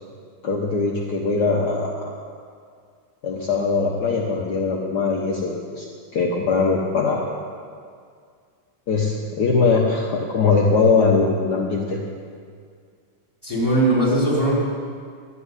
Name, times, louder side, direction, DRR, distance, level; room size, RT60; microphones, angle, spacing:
voice 1, 0.4-2.1 3.2-5.8 6.1-7.3 8.9-12.0, left 4 dB, 65° left, -2 dB, 1.0 m, -21 dB
voice 2, 13.4-14.6, right 1 dB, 5° right, -7 dB, 4.4 m, -19 dB
12.5 x 8.4 x 9.7 m, 2.1 s
omnidirectional pair, 3.4 m